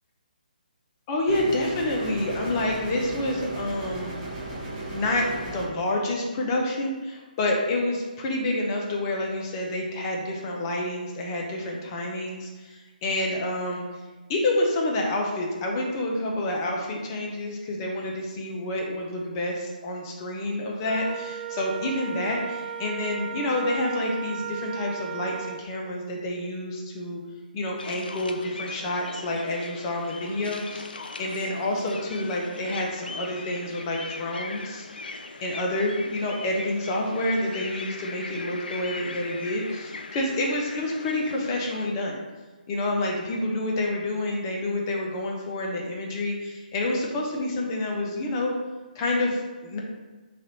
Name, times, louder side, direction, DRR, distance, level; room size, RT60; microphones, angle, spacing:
voice 1, 1.1-4.2 4.9-13.8 14.3-27.2 27.5-34.9 35.4-42.2 42.7-48.5 48.9-49.8, left 1 dB, 25° left, -1 dB, 0.6 m, -28 dB
sound 1, 1.3-5.7, right 2 dB, 25° right, 0.8 m, -35 dB
Wind instrument woodwind instrument, 20.8-25.7, right 8 dB, 65° right, 0.4 m, -35 dB
sound 2, 27.8-41.9, left 3 dB, 80° left, 0.4 m, -40 dB
3.3 x 2.5 x 4.0 m, 1.3 s
hypercardioid pair, 150°, 5 cm